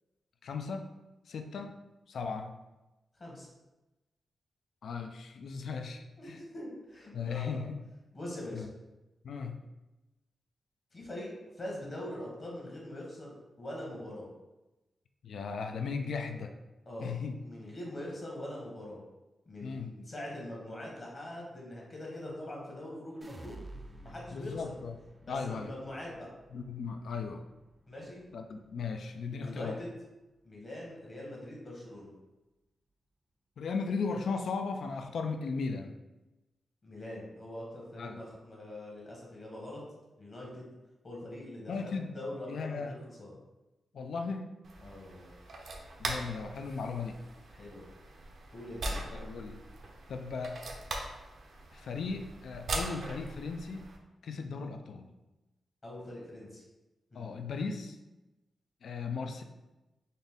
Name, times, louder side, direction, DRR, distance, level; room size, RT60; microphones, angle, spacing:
voice 1, 0.4-0.9 1.3-1.7 2.1-2.6 4.8-6.4 7.1-7.8 8.5-8.7 9.2-9.6 15.2-16.5 17.0-17.4 19.6-19.9 24.3-24.9 25.3-25.7 26.5-27.4 28.3-29.8 33.6-35.9 38.0-38.2 41.7-42.1 42.5-42.9 43.9-44.5 46.0-47.2 49.1-49.6 50.1-50.6 51.7-53.9 54.2-55.1 57.1-58.0 58.8-59.4, left 5 dB, 70° left, 6 dB, 0.4 m, -36 dB
voice 2, 6.2-7.6 8.1-8.7 10.9-11.3 11.6-14.3 16.8-19.0 19.5-23.6 24.0-24.7 25.2-26.3 27.9-28.2 29.3-29.9 30.4-32.1 36.8-39.8 40.2-40.7 41.0-43.3 44.8-45.3 47.5-47.8 48.5-49.0 55.8-56.6 57.1-57.4, left 1 dB, 35° left, -3 dB, 1.1 m, -43 dB
sound 1, 23.2-29.4 29.8-30.4, right 1 dB, 20° right, 0.4 m, -52 dB
sound 2, 44.6-54.0, right 2 dB, 65° right, 0.6 m, -41 dB
4.0 x 2.6 x 3.5 m, 1.0 s
wide cardioid pair, 130°, 0 cm